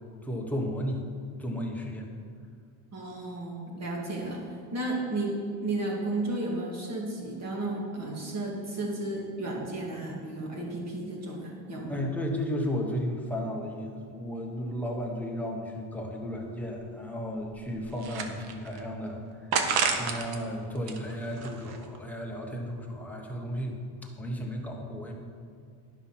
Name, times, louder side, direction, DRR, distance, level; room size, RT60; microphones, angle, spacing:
voice 1, 0.2-1.0 1.4-2.1 11.9-19.2 19.5-19.7 19.9-25.1, equal, 5° left, -1 dB, 1.1 m, -34 dB
voice 2, 2.9-4.4 4.7-5.4 5.6-12.0, right 2 dB, 35° right, -2 dB, 2.3 m, -33 dB
sound 1, 16.4-16.5 16.8-16.9 17.5-18.8 19.5-20.4 20.8-22.0, right 5 dB, 50° right, 1.1 m, -30 dB
11.0 x 5.7 x 5.8 m, 2.3 s
cardioid pair, 140°, 47 cm